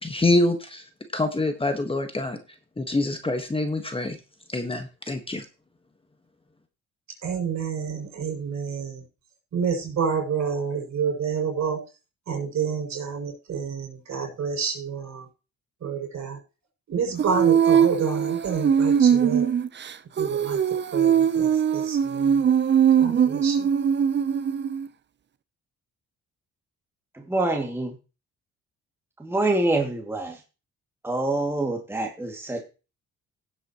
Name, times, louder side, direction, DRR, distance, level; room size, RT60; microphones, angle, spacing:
voice 1, 0.0-0.8 1.1-2.4 2.8-4.2 4.5-5.4, left 2 dB, 20° left, 7 dB, 1.4 m, -25 dB
voice 2, 7.2-9.0 9.5-11.8 12.3-15.2 15.8-16.4 16.9-19.4 20.2-20.6 20.9-22.4 23.0-23.7, right 6 dB, 65° right, 2 dB, 6.8 m, -29 dB
Female singing, 17.2-24.9, right 8 dB, 35° right, 0.7 m, -21 dB
voice 3, 27.3-27.9 29.2-30.4 31.0-32.6, right 2 dB, 10° right, 0 dB, 2.3 m, -25 dB
16.0 x 7.9 x 3.0 m, 0.32 s
cardioid pair, 90°, 30 cm